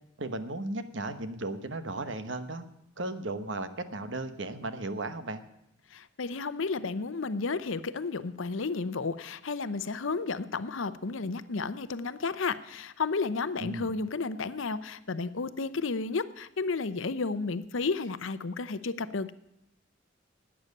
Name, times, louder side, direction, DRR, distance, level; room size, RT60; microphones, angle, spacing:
voice 1, 0.2-2.6 3.0-5.4 13.6-13.9, right 2 dB, 70° right, 10 dB, 1.1 m, -35 dB
voice 2, 5.9-19.3, left 4 dB, 80° left, 13 dB, 0.7 m, -32 dB
12.0 x 8.8 x 9.6 m, 0.83 s
head